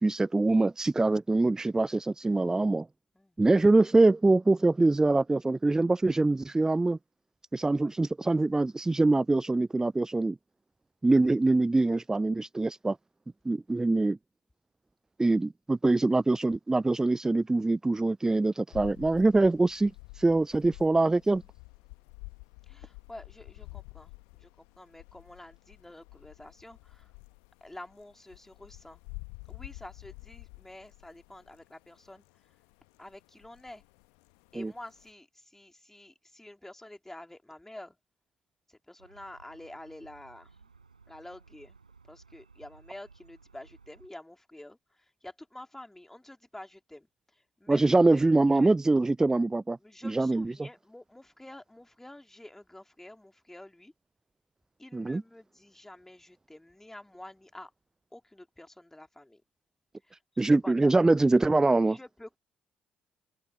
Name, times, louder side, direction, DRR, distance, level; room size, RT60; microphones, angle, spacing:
voice 1, 0.0-2.9 3.4-7.0 7.5-10.4 11.0-13.0 13.4-14.2 15.2-21.4 34.5-34.7 47.7-49.8 50.0-50.7 54.9-55.2 60.4-62.0, right 2 dB, 15° right, 0.5 m, -24 dB
sound 1, 18.7-35.1, left 40 dB or more, 65° left, 1.4 m, -50 dB
voice 2, 22.7-27.1 27.6-29.0 29.5-32.2 33.0-33.8 34.5-38.0 38.7-40.6 41.1-41.8 42.0-47.1 47.3-48.7 49.8-53.9 54.8-57.7 58.1-59.4 60.1-60.9 61.8-62.4, left 1 dB, 10° left, 3.3 m, -49 dB
sound 2, 39.0-44.1, right 4 dB, 85° right, 6.7 m, -58 dB
figure-of-eight pair, 50°, 4 cm